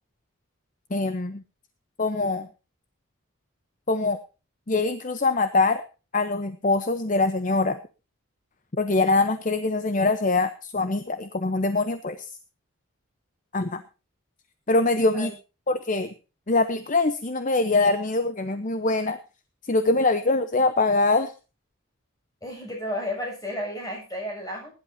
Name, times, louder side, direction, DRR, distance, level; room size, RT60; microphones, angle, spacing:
voice 1, 0.9-1.4 2.0-2.5 3.9-4.2 4.7-5.8 6.1-7.8 8.8-12.3 13.5-13.8 14.7-15.3 15.7-16.1 16.5-19.2 19.7-21.3, left 3 dB, 40° left, 11 dB, 0.8 m, -23 dB
voice 2, 22.4-24.7, left 1 dB, 15° left, 0 dB, 6.9 m, -32 dB
21.0 x 11.5 x 2.7 m, 0.32 s
head